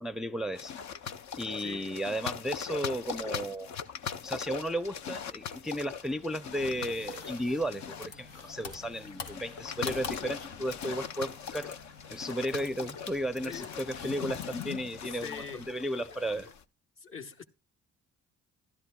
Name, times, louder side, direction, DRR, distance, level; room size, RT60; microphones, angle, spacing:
voice 1, 0.0-0.7 1.4-3.7 4.2-11.7 12.1-16.5, equal, ahead, 0.5 m, -34 dB
sound 1, 0.5-16.6, left 7 dB, 65° left, 0.7 m, -40 dB
voice 2, 1.6-2.0 13.4-14.0 15.0-15.7 16.1-16.3 17.0-17.4, left 6 dB, 45° left, 1.2 m, -44 dB
sound 2, 6.6-15.7, left 4 dB, 90° left, 2.0 m, -47 dB
15.0 x 12.0 x 2.3 m
cardioid pair, 90°, 30 cm